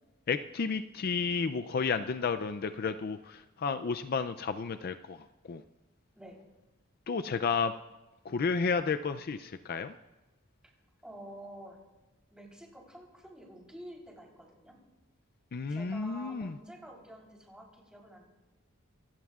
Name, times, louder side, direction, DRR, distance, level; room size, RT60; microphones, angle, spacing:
voice 1, 0.3-5.6 7.1-7.7 8.2-9.9 15.5-16.6, left 5 dB, 50° left, 10 dB, 0.4 m, -32 dB
voice 2, 11.0-11.8 12.3-14.8 15.7-18.3, right 1 dB, 5° right, -2 dB, 3.6 m, -49 dB
26.5 x 16.5 x 2.4 m, 1.1 s
head